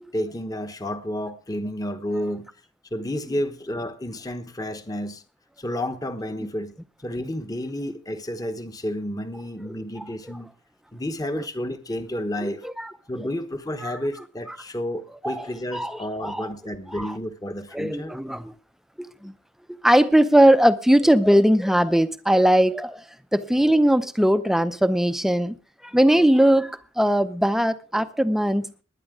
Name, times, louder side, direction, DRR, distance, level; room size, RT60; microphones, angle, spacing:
voice 1, 0.1-2.5 2.9-5.2 5.6-6.7 7.0-10.5 10.9-12.7 13.1-18.1, left 1 dB, 15° left, 1.0 m, -31 dB
voice 2, 9.7-10.1 12.4-12.9 13.8-13.9 15.2-15.5 15.7-16.5 16.9-17.1 17.7-18.5 19.0-19.3 19.8-23.0 23.3-25.6 25.8-28.8, right 1 dB, ahead, 0.6 m, -20 dB
20.5 x 9.9 x 3.7 m
head